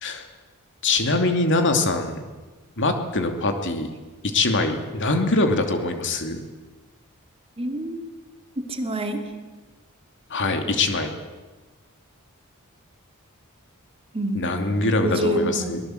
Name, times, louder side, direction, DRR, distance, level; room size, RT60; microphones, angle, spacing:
voice 1, 0.8-2.2 2.8-3.9 4.3-6.4 10.3-11.1 14.3-15.8, left 2 dB, 55° left, 6 dB, 2.7 m, -23 dB
voice 2, 7.6-8.1 8.6-9.2 14.1-15.7, right 1 dB, 25° right, 5 dB, 2.6 m, -27 dB
24.0 x 19.5 x 7.8 m, 1.3 s
head